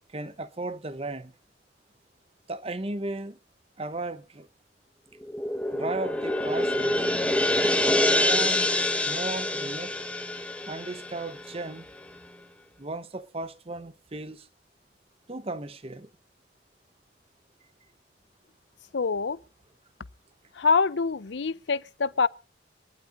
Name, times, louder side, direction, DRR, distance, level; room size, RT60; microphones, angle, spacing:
voice 1, 0.1-1.3 2.5-3.4 3.8-4.5 5.7-7.0 8.0-8.7 9.0-9.9 10.7-11.9 12.8-14.5 15.3-16.1, right 2 dB, 30° right, 0.9 m, -35 dB
sound 1, 5.2-11.8, left 1 dB, 5° left, 1.2 m, -26 dB
voice 2, 18.9-19.4 20.6-22.3, left 5 dB, 75° left, 0.6 m, -25 dB
25.5 x 11.5 x 2.6 m
head